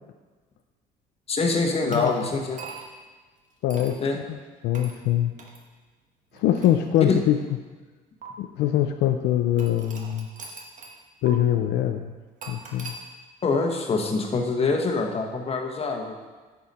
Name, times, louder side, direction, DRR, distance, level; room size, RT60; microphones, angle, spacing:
voice 1, 1.3-2.6 4.0-4.2 7.1-7.2 13.4-16.1, left 4 dB, 35° left, 2 dB, 1.3 m, -25 dB
sound 1, 1.9-3.1 3.7-4.0 4.7-5.0 5.4-5.6 6.3-7.4 8.2-8.3 9.6-11.0 11.3-11.4 12.4-13.0, right 4 dB, 50° right, 1.5 m, -42 dB
voice 2, 3.6-4.0 4.6-5.3 6.3-7.4 8.4-10.3 11.2-12.1 12.5-12.9, left 11 dB, 80° left, 6 dB, 0.6 m, -23 dB
9.5 x 7.0 x 4.3 m, 1.4 s
cardioid pair, 110°, 17 cm